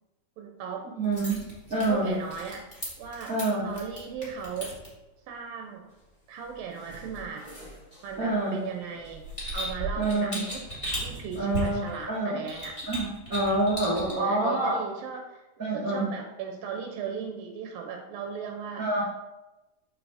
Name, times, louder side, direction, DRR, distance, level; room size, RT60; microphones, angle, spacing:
voice 1, 0.4-0.9 1.8-3.4 3.6-4.8 5.3-5.9 6.3-7.5 8.0-9.2 9.5-10.6 11.0-12.8 14.0-18.9, right 6 dB, 80° right, 2 dB, 2.4 m, -37 dB
sound 1, 1.0-4.9 6.7-8.3 8.9-12.0 12.5-14.1, equal, 15° left, 2.0 m, -37 dB
voice 2, 1.0-1.4 1.7-2.1 3.3-3.7 8.2-8.6 10.0-10.4 11.3-12.4 12.8-14.8 15.6-16.1 18.8-19.0, right 2 dB, 45° right, -8 dB, 1.1 m, -27 dB
6.9 x 6.1 x 3.4 m, 1.0 s
omnidirectional pair, 4.1 m